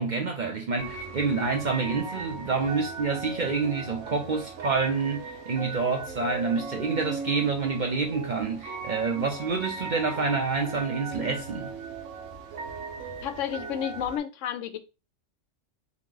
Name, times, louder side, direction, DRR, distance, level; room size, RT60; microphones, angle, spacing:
voice 1, 0.0-11.7, right 4 dB, 50° right, 0.6 m, -28 dB
sound 1, 0.8-14.2, right 4 dB, 75° right, 1.1 m, -38 dB
voice 2, 13.2-14.8, left 10 dB, 75° left, 0.9 m, -31 dB
3.6 x 2.9 x 3.8 m
omnidirectional pair, 1.3 m